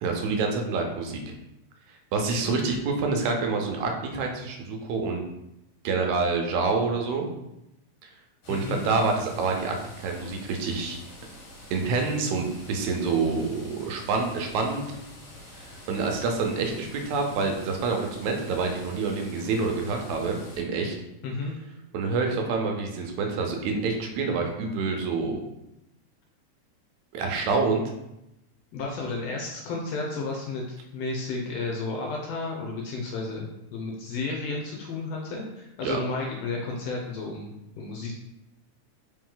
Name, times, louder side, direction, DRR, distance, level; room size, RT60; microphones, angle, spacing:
voice 1, 0.0-1.2 2.1-5.2 5.8-7.3 8.0-8.1 8.5-11.0 11.7-14.9 15.5-21.0 21.9-25.4 27.1-27.8 35.8-36.0, right 4 dB, 80° right, 2 dB, 2.0 m, -27 dB
sound 1, 8.4-20.6, left 1 dB, 55° left, 1.7 m, -46 dB
voice 2, 8.5-8.9 21.2-21.5 28.7-30.6 30.9-38.2, left 3 dB, 75° left, -1 dB, 1.6 m, -32 dB
4.5 x 3.1 x 3.7 m, 0.88 s
omnidirectional pair, 3.4 m